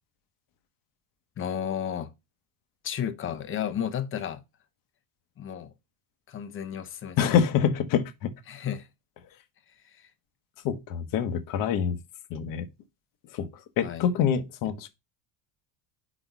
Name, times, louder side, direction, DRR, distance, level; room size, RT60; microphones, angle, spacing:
voice 1, 1.4-2.1 2.8-4.4 5.4-5.7 6.3-7.4 8.5-8.9 9.8-10.1 13.8-14.1, left 9 dB, 30° left, 0.7 m, -33 dB
voice 2, 7.2-8.3 10.6-12.0 12.3-12.7 13.3-13.5 13.8-14.9, left 8 dB, 50° left, 1.0 m, -25 dB
5.1 x 4.1 x 4.5 m
cardioid pair, 160°, 42 cm